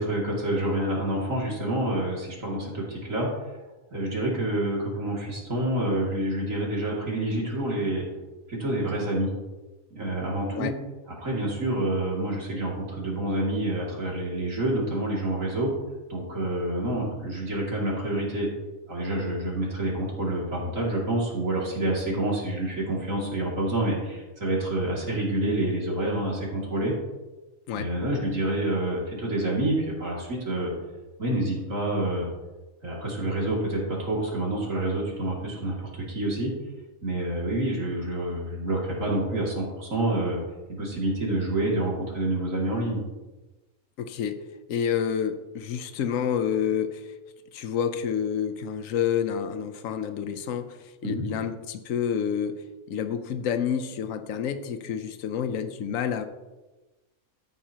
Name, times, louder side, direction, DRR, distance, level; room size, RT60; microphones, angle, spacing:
voice 1, 0.0-3.6 3.9-8.0 8.5-9.3 9.9-10.7 11.2-15.7 16.1-18.5 18.9-26.9 27.8-30.7 31.2-32.3 32.8-36.5 37.0-40.4 40.7-43.0 51.0-51.3, right 1 dB, 65° right, -4 dB, 3.1 m, -28 dB
voice 2, 44.0-44.4 44.7-47.2 47.5-56.3, left 8 dB, 70° left, 9 dB, 1.2 m, -29 dB
13.5 x 9.7 x 3.0 m, 1.1 s
omnidirectional pair, 1.5 m